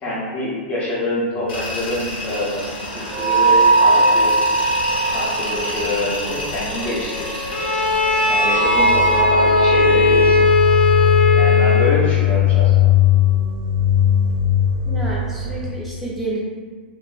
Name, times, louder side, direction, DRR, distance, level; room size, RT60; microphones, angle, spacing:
voice 1, 0.0-2.7 2.9-4.3 5.1-7.5 8.3-10.4 11.3-12.9, left 1 dB, 25° left, -10 dB, 0.8 m, -26 dB
sound 1, 1.2-15.7, left 3 dB, 35° right, 0.4 m, -19 dB
Tools, 1.5-9.2, left 1 dB, 65° left, 1.2 m, -30 dB
Bowed string instrument, 7.5-12.1, left 2 dB, 85° left, 0.5 m, -17 dB
voice 2, 14.8-16.4, right 2 dB, 5° right, -7 dB, 0.9 m, -29 dB
2.9 x 2.4 x 2.4 m, 1.5 s
hypercardioid pair, 110°, 5 cm